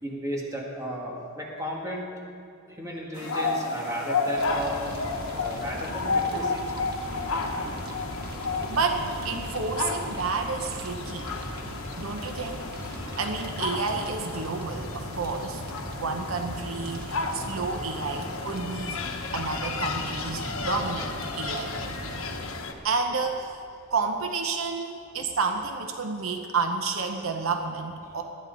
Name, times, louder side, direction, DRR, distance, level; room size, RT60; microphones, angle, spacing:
voice 1, 0.0-2.1 2.7-4.9 5.3-6.8 7.1-7.7 22.8-23.2 23.7-23.8 24.6-24.8 25.5-25.6 28.0-28.2, equal, 15° right, -2 dB, 1.9 m, -35 dB
sound 1, 3.1-22.7, left 3 dB, 75° left, 1.2 m, -32 dB
Fire, 4.4-22.4, right 1 dB, 45° right, 1.4 m, -39 dB
voice 2, 8.4-11.3 12.0-15.6 15.9-19.0 19.3-21.7 22.8-23.6 23.9-28.2, right 4 dB, 70° right, 5 dB, 0.9 m, -30 dB
19.5 x 11.5 x 4.0 m, 2.5 s
head